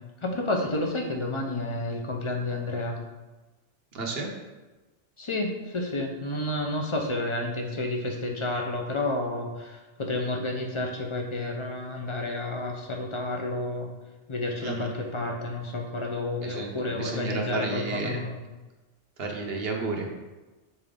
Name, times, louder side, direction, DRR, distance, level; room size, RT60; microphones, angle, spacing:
voice 1, 0.2-3.0 5.2-13.9 14.3-18.4, left 2 dB, 30° left, 1 dB, 0.7 m, -30 dB
voice 2, 3.9-4.3 14.6-14.9 16.4-18.2 19.2-20.1, right 3 dB, 60° right, 1 dB, 1.0 m, -32 dB
6.6 x 3.9 x 3.7 m, 1.2 s
omnidirectional pair, 1.2 m